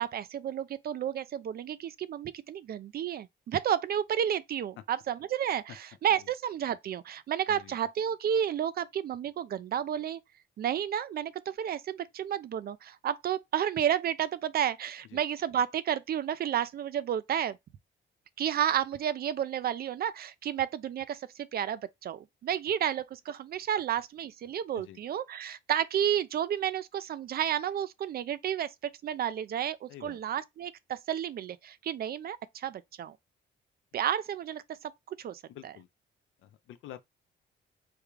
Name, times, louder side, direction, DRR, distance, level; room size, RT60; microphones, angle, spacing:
voice 1, 0.0-5.6 6.0-10.2 10.6-17.6 18.4-33.2 33.9-34.6 35.1-35.4, right 9 dB, 50° right, 0.4 m, -31 dB
voice 2, 35.5-35.9 36.4-37.1, left 12 dB, 80° left, 0.6 m, -48 dB
3.5 x 2.3 x 3.1 m
cardioid pair, 90°, 20 cm